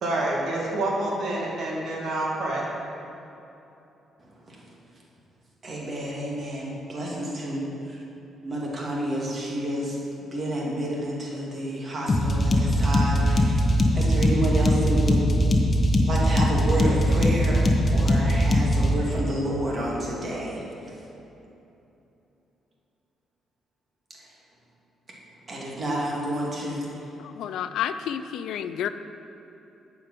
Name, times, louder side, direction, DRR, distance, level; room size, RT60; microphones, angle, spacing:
voice 1, 0.0-2.7, right 1 dB, 65° right, -3 dB, 2.2 m, -27 dB
voice 2, 4.4-4.8 5.6-8.0 8.4-10.0 10.3-15.2 16.1-20.6 24.2-24.3 25.5-26.9, right 1 dB, 40° right, -4 dB, 2.3 m, -30 dB
sound 1, 12.1-18.9, equal, 30° left, 1.0 m, -21 dB
voice 3, 27.2-28.9, left 9 dB, 80° left, 11 dB, 0.4 m, -30 dB
8.7 x 5.2 x 7.5 m, 2.9 s
cardioid pair, 90°, 0 cm